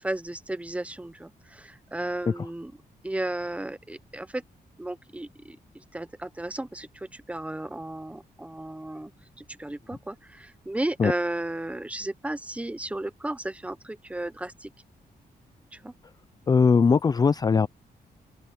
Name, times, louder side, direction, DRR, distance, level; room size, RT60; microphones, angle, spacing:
voice 1, 0.0-2.7 3.0-4.4 4.8-9.1 9.4-14.7 15.7-15.9, right 1 dB, 10° right, 0.8 m, -34 dB
voice 2, 16.5-17.7, left 5 dB, 25° left, 0.4 m, -20 dB
open air
wide cardioid pair, 150°, 16 cm